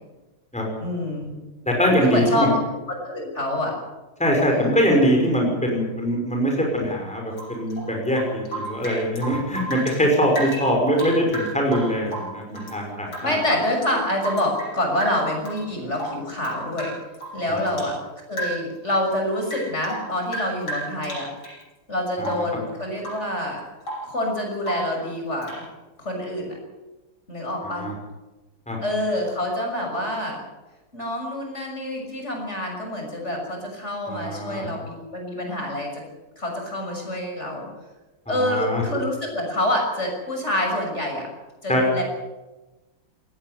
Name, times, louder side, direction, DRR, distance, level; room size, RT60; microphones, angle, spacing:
voice 1, 0.8-1.3 2.0-2.6 2.9-3.8 4.5-4.7 13.2-16.9 17.3-18.0 18.3-21.3 21.9-23.6 24.0-25.7 26.0-26.5 27.3-27.9 28.8-30.4 30.9-36.0 36.4-37.7 38.3-41.3 41.6-42.0, left 1 dB, 30° left, 1 dB, 6.6 m, -26 dB
voice 2, 1.6-2.5 4.2-13.4 17.5-17.6 22.2-22.4 27.8-27.9 28.7-28.8 34.1-34.7 38.3-38.8 41.7-41.8, equal, 5° left, 0 dB, 5.7 m, -22 dB
Rain / Drip, 7.3-10.0 10.3-12.8 13.1-14.7 15.0-15.6 15.9-18.0 18.3-18.8 19.1-21.6 22.2-22.6 23.0-23.3 23.6-24.1 24.6-25.0 25.4-25.7, right 1 dB, 65° left, 9.0 m, -34 dB
19.5 x 17.0 x 9.6 m, 1.1 s
omnidirectional pair, 2.3 m